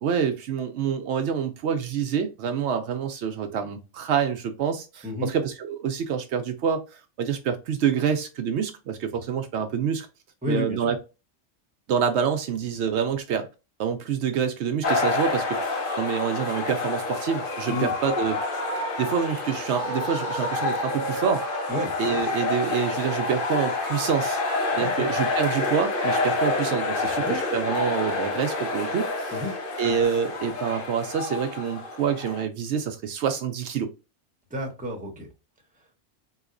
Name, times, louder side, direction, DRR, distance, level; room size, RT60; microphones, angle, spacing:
voice 1, 0.0-10.1 10.5-11.0 11.9-13.5 13.8-18.4 19.0-21.4 22.0-24.4 24.8-29.4 29.8-33.9, right 7 dB, 75° right, 0.8 m, -27 dB
voice 2, 10.4-10.8 17.7-17.9 21.7-21.9 24.8-25.1 27.0-27.4 29.3-29.5 34.5-35.3, left 1 dB, 10° right, 0.9 m, -30 dB
sound 1, 14.8-32.4, left 3 dB, 50° left, 1.0 m, -28 dB
4.0 x 2.8 x 2.5 m
omnidirectional pair, 1.2 m